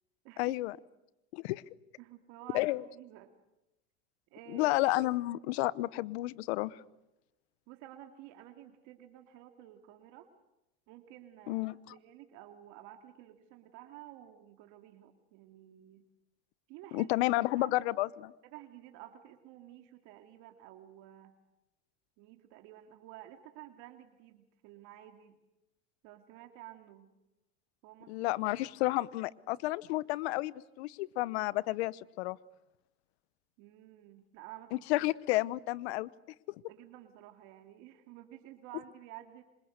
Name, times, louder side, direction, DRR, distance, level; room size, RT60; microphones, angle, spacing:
voice 1, 0.4-0.8 1.3-1.6 2.5-2.8 4.5-6.8 11.5-11.8 16.9-18.3 28.1-32.4 34.9-36.1, left 19 dB, 80° left, 20 dB, 1.0 m, -31 dB
voice 2, 2.0-3.3 4.3-4.7 7.7-10.3 10.9-11.6 11.9-16.1 16.7-17.1 17.6-17.7 18.4-21.3 22.2-25.4 26.0-27.1 27.8-28.1 28.6-28.7 33.6-34.8 36.7-39.4, right 13 dB, 65° right, 6 dB, 2.5 m, -52 dB
28.0 x 26.0 x 6.7 m, 0.94 s
supercardioid pair, 110°, 32 cm